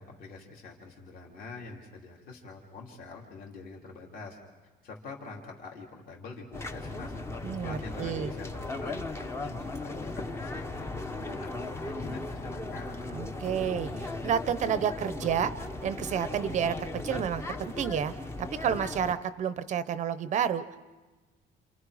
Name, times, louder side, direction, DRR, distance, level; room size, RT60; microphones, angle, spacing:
voice 1, 0.0-4.4 4.8-13.0, left 3 dB, 50° left, -1 dB, 2.8 m, -45 dB
sound 1, 6.5-19.1, left 2 dB, 15° left, 0.7 m, -37 dB
voice 2, 7.4-8.3 13.1-15.5 15.8-18.1 18.4-20.8, right 8 dB, 40° right, 13 dB, 0.6 m, -30 dB
29.5 x 27.5 x 4.8 m, 1.2 s
cardioid pair, 175°, 19 cm